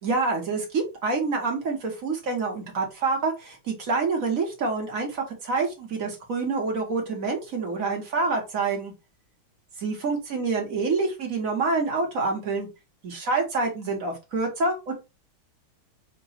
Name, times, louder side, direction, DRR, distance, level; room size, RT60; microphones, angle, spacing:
voice 1, 0.0-8.9 9.8-12.7 13.0-14.9, right 3 dB, 50° right, 1 dB, 1.2 m, -27 dB
3.8 x 2.2 x 4.0 m, 0.27 s
omnidirectional pair, 2.4 m